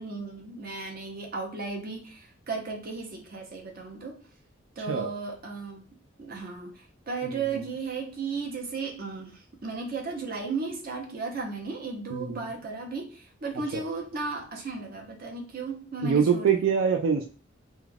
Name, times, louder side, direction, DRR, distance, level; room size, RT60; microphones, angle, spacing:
voice 1, 0.0-4.2 4.8-5.9 6.2-16.6, right 4 dB, 50° right, 1 dB, 0.7 m, -35 dB
voice 2, 7.3-7.6 12.1-12.4 13.7-13.8 16.0-17.3, right 6 dB, 85° right, 4 dB, 0.3 m, -25 dB
2.3 x 2.2 x 3.2 m, 0.38 s
head